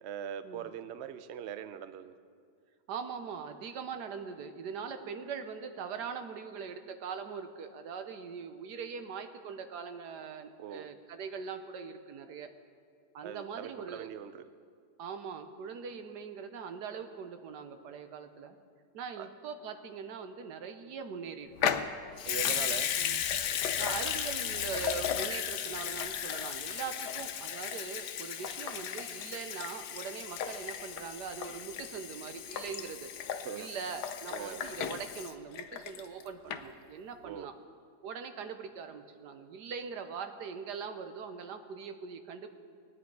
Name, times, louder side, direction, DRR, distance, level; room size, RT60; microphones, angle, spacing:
voice 1, 0.0-2.1 10.6-10.9 13.2-14.5 19.2-19.3 22.2-22.9 33.4-33.7 34.3-34.6 37.2-37.5, right 8 dB, 65° right, 11 dB, 0.6 m, -41 dB
voice 2, 2.9-12.5 13.1-14.1 15.0-18.6 18.9-21.7 23.0-23.2 23.8-33.1 33.5-37.5 38.0-42.5, right 6 dB, 85° right, 8 dB, 1.4 m, -41 dB
Water tap faucet / Sink (filling or washing) / Liquid, 21.6-36.2 36.5-36.6, left 9 dB, 80° left, 1.3 m, -35 dB
20.5 x 9.4 x 4.7 m, 2.2 s
omnidirectional pair, 1.7 m